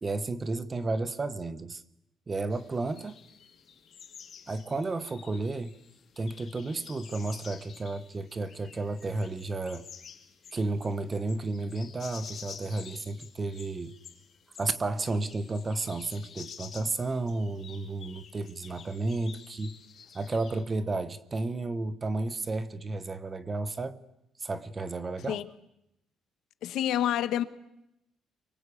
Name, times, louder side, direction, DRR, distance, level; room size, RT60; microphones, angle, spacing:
voice 1, 0.0-1.8 2.3-3.2 4.5-5.7 6.2-9.9 10.5-13.9 14.6-19.8 20.1-24.0 24.4-25.4, right 3 dB, 20° right, 1.0 m, -32 dB
sound 1, 2.5-20.6, left 7 dB, 40° left, 2.3 m, -50 dB
voice 2, 26.6-27.4, left 11 dB, 70° left, 1.2 m, -28 dB
24.5 x 23.5 x 8.4 m
cardioid pair, 175°, 0 cm